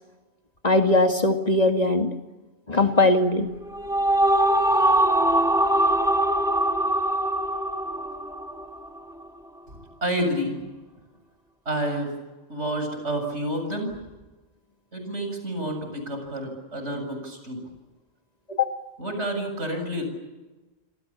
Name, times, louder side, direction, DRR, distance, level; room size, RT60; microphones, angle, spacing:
voice 1, 0.6-2.1 2.7-3.5 18.5-18.8, left 2 dB, 35° left, 5 dB, 2.2 m, -20 dB
sound 1, 3.5-9.0, right 1 dB, 5° right, 1.5 m, -22 dB
voice 2, 10.0-10.6 11.7-12.1 12.5-13.9 14.9-17.6 19.0-20.0, right 1 dB, 80° right, 5 dB, 7.7 m, -29 dB
27.0 x 27.0 x 7.3 m, 1.2 s
omnidirectional pair, 1.2 m